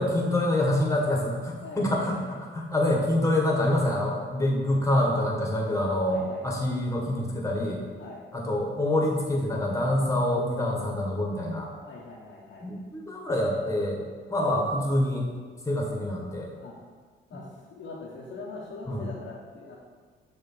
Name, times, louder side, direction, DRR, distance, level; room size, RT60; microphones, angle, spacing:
voice 1, 0.0-2.2 2.5-7.8 8.3-11.7 12.6-14.0 14.3-15.3 15.7-16.5 18.9-19.1, left 1 dB, 15° left, -1 dB, 1.6 m, -26 dB
voice 2, 1.6-2.3 6.1-6.5 8.0-8.2 11.8-12.7 16.6-16.8 17.3-19.8, left 3 dB, 75° left, -6 dB, 1.2 m, -42 dB
6.7 x 3.5 x 5.7 m, 1.5 s
cardioid pair, 90°, 20 cm